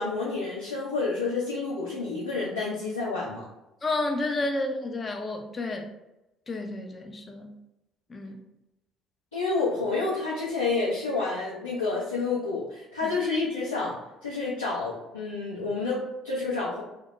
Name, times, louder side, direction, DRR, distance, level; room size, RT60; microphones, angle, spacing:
voice 1, 0.0-3.4 9.3-14.0 14.2-16.8, left 3 dB, 90° left, -8 dB, 0.5 m, -29 dB
voice 2, 3.8-5.9 6.5-7.6 8.1-8.4 13.0-13.1, left 2 dB, 30° left, 4 dB, 0.4 m, -31 dB
2.1 x 2.1 x 2.8 m, 0.96 s
figure-of-eight pair, 50°, 0 cm